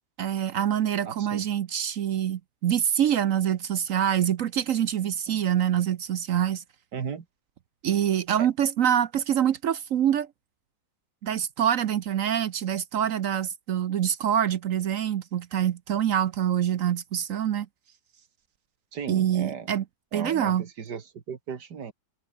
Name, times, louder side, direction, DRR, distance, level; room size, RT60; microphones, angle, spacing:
voice 1, 0.2-6.6 7.8-10.3 11.2-17.7 19.1-19.8 20.1-20.6, right 10 dB, 60° right, 1.0 m, -25 dB
voice 2, 1.0-1.4 5.3-5.4 6.9-7.3 8.4-8.5 18.9-19.7 20.1-21.9, right 6 dB, 85° right, 2.4 m, -36 dB
omnidirectional pair, 1.7 m